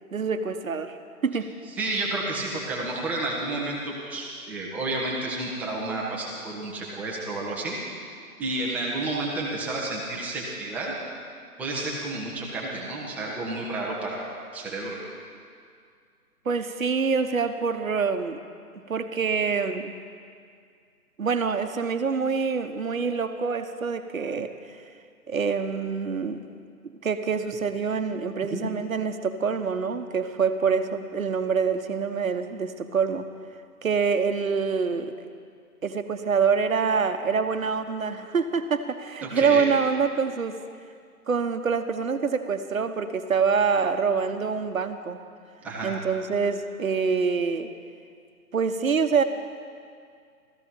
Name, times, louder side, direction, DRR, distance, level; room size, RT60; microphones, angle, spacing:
voice 1, 0.1-1.0 1.2-1.5 16.4-18.4 18.9-19.9 21.2-24.8 25.3-26.4 26.8-33.3 33.8-35.1 35.8-40.6 41.3-45.2 45.8-47.7 48.5-49.2, right 5 dB, 60° right, 8 dB, 1.1 m, -26 dB
voice 2, 1.8-7.8 8.4-10.9 11.6-15.0 28.4-28.6 39.2-39.7 45.6-45.9, right 2 dB, 5° right, -4 dB, 0.9 m, -31 dB
16.0 x 14.5 x 5.2 m, 2.2 s
figure-of-eight pair, 135°, 45 cm